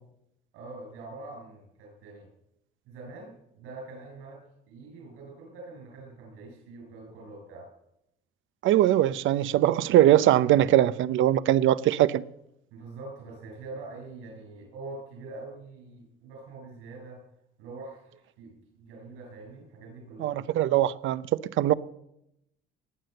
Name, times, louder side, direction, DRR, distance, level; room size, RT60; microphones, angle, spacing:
voice 1, 0.5-2.3 2.9-4.4 4.7-7.7 12.7-17.2 17.6-20.3, right 3 dB, 85° right, 6.6 m, -44 dB
voice 2, 8.6-12.2 20.2-21.2 21.6-21.7, right 13 dB, 70° right, 0.7 m, -21 dB
19.5 x 7.8 x 7.8 m
supercardioid pair, 75°, 21 cm